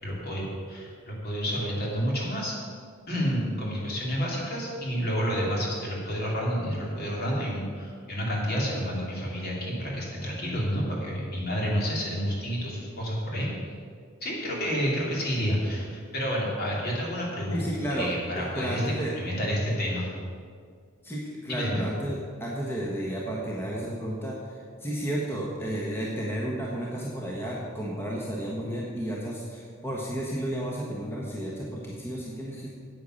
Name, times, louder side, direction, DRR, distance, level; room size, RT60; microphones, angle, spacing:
voice 1, 0.0-2.6 3.1-13.5 14.2-20.1 21.5-21.8, equal, 50° left, -3 dB, 3.0 m, -29 dB
voice 2, 17.5-19.1 21.0-32.7, right 1 dB, 10° left, -4 dB, 1.3 m, -32 dB
9.3 x 8.6 x 6.4 m, 2.1 s
head